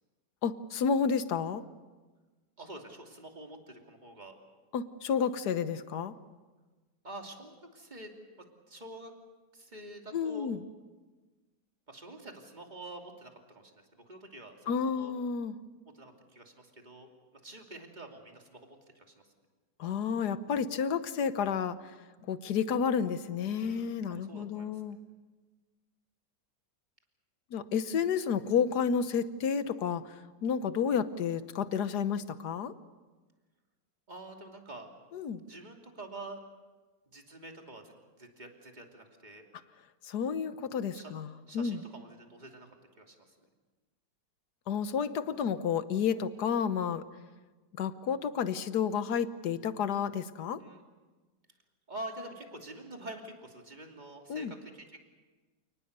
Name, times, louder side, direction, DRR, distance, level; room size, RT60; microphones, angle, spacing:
voice 1, 0.4-1.6 4.7-6.1 10.1-10.6 14.7-15.6 19.8-22.0 22.2-25.0 27.5-32.7 35.1-35.4 40.0-41.8 44.7-47.0 47.8-50.6 54.3-54.5, left 7 dB, 70° left, 12 dB, 1.5 m, -31 dB
voice 2, 2.6-4.3 7.0-8.1 8.7-9.1 9.5-10.5 11.9-15.1 15.9-19.1 23.5-24.8 34.1-34.9 35.4-36.4 37.1-39.5 40.9-41.1 41.5-42.7 43.0-43.4 50.6-50.8 51.9-55.0, right 1 dB, 25° right, 2 dB, 2.9 m, -47 dB
28.5 x 19.0 x 6.8 m, 1.3 s
omnidirectional pair, 1.9 m